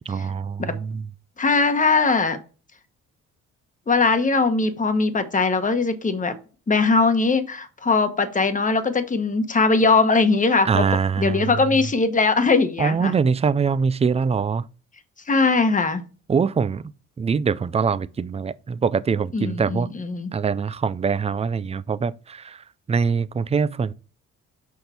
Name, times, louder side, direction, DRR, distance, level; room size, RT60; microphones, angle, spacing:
voice 1, 0.1-1.0 10.6-11.5 12.8-14.6 16.3-16.9 17.2-19.9 20.3-22.6 22.9-23.9, right 6 dB, 20° right, 0.4 m, -23 dB
voice 2, 1.4-2.4 3.9-6.3 6.7-10.8 11.2-13.1 15.3-16.0 19.3-20.3, left 4 dB, 25° left, 1.2 m, -20 dB
6.2 x 5.2 x 4.4 m
cardioid pair, 90°, 30 cm